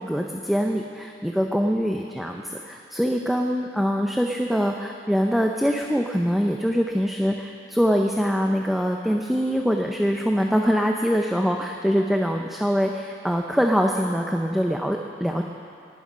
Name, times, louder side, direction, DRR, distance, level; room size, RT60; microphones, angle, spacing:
voice 1, 0.0-15.4, equal, ahead, 1 dB, 0.6 m, -23 dB
11.5 x 11.5 x 9.4 m, 2.3 s
head